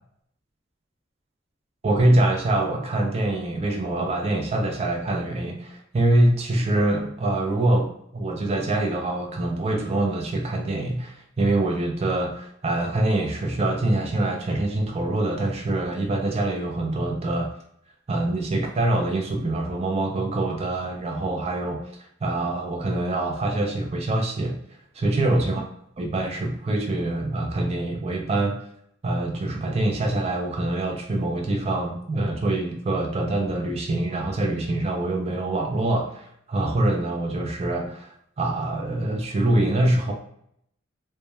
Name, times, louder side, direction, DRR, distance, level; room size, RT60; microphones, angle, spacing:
voice 1, 1.8-17.5 18.1-21.8 22.2-24.6 25.0-25.6 26.0-28.6 29.0-40.1, right 2 dB, 30° right, 1 dB, 0.4 m, -24 dB
2.2 x 2.1 x 2.9 m, 0.70 s
head